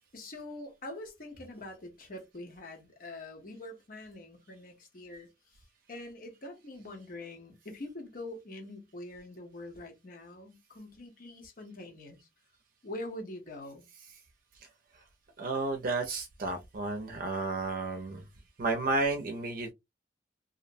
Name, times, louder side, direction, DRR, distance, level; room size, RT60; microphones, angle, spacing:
voice 1, 0.1-5.6 5.9-12.3 12.8-13.9, left 1 dB, 55° left, 0.9 m, -44 dB
voice 2, 15.4-18.2 18.6-19.7, right 3 dB, 55° right, 0.5 m, -32 dB
2.6 x 2.1 x 2.5 m
head